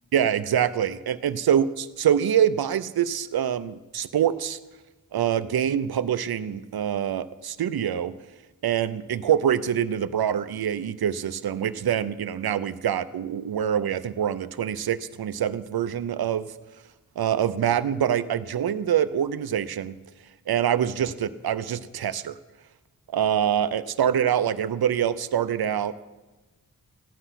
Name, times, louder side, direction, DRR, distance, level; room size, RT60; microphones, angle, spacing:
voice 1, 0.1-4.6 5.1-8.1 8.6-16.5 17.2-19.9 20.5-22.4 23.1-26.0, right 9 dB, 80° right, 14 dB, 0.6 m, -25 dB
15.0 x 10.0 x 5.8 m, 1.2 s
wide cardioid pair, 100°, 36 cm